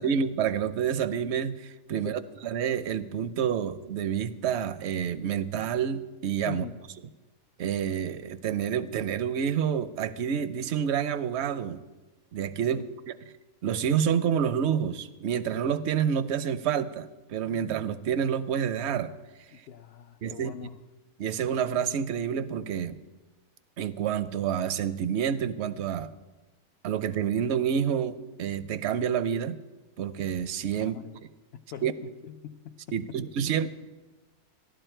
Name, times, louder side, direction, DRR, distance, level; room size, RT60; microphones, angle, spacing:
voice 1, 0.0-6.6 7.6-11.8 12.3-13.1 13.6-19.1 20.2-20.5 21.2-23.0 23.8-26.1 26.8-29.6 30.0-31.0 31.8-31.9 32.9-33.7, right 8 dB, 60° right, 14 dB, 0.8 m, -28 dB
voice 2, 19.5-20.8 30.8-31.1 31.5-33.2, left 8 dB, 65° left, 6 dB, 0.6 m, -42 dB
16.0 x 11.5 x 4.5 m, 1.2 s
omnidirectional pair, 1.5 m